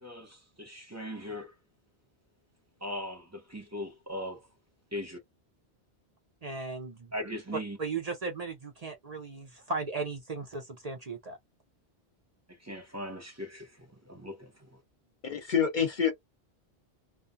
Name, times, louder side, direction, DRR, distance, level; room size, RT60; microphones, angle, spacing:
voice 1, 0.0-1.5 2.8-4.5 4.9-5.2 7.1-7.8 12.5-14.8, left 1 dB, 15° right, 0.9 m, -39 dB
voice 2, 6.4-7.1 7.8-11.4 15.3-15.4, right 3 dB, 40° right, 0.8 m, -36 dB
voice 3, 15.2-16.1, left 7 dB, 55° left, 0.8 m, -27 dB
2.4 x 2.2 x 2.6 m
omnidirectional pair, 1.1 m